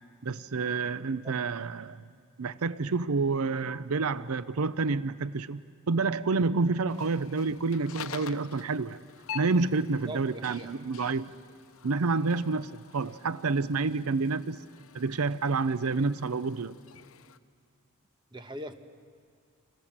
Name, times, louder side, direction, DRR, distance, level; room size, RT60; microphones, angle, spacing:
voice 1, 0.2-2.0 2.4-5.6 5.9-9.0 9.3-11.3 11.8-14.6 14.9-16.8, right 4 dB, 80° right, 15 dB, 0.6 m, -29 dB
voice 2, 1.0-1.4 10.1-10.7 18.3-18.7, right 1 dB, 20° right, 8 dB, 1.3 m, -41 dB
sound 1, 6.9-17.4, left 8 dB, 65° left, 0.8 m, -47 dB
28.5 x 27.0 x 7.4 m, 2.1 s
head